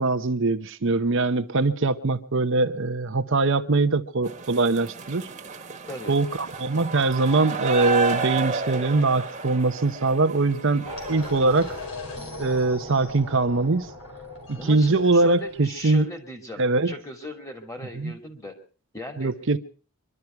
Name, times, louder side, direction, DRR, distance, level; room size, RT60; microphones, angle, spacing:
voice 1, 0.0-5.3 6.1-11.7 12.4-13.9 14.5-16.1 16.6-16.9 18.0-18.1 19.2-19.6, right 3 dB, 60° right, 0.8 m, -22 dB
sound 1, 4.2-11.9, right 5 dB, 35° right, 1.6 m, -32 dB
sound 2, 10.8-16.0, left 2 dB, 80° left, 4.9 m, -39 dB
voice 2, 14.6-18.6 18.9-19.3, left 1 dB, 15° left, 2.8 m, -38 dB
24.0 x 12.5 x 4.6 m
head